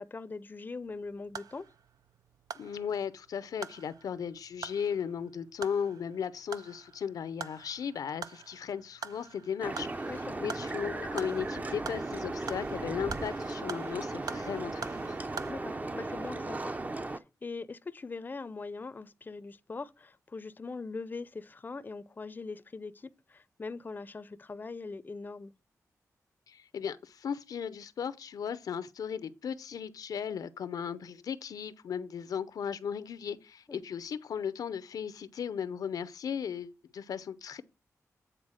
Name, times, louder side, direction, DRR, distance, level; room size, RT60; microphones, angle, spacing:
voice 1, 0.0-1.7 10.1-10.5 15.5-25.5 33.7-33.8, left 4 dB, 30° left, 0.5 m, -42 dB
sound 1, 0.8-15.5, right 6 dB, 85° right, 0.5 m, -46 dB
voice 2, 2.5-10.1 10.4-15.2 26.5-37.6, left 7 dB, 90° left, 0.6 m, -36 dB
sound 2, 9.6-17.2, right 2 dB, 25° right, 0.6 m, -36 dB
8.9 x 4.0 x 6.3 m
wide cardioid pair, 90°, 6 cm